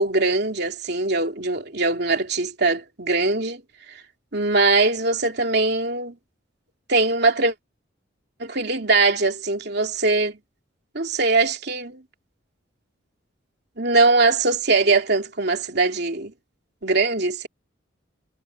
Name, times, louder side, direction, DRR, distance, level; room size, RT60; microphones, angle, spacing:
voice 1, 0.0-3.6 3.9-4.0 4.3-6.1 6.9-7.5 8.4-10.4 10.9-12.0 13.8-16.3 16.8-17.5, right 3 dB, 55° right, 3.0 m, -21 dB
head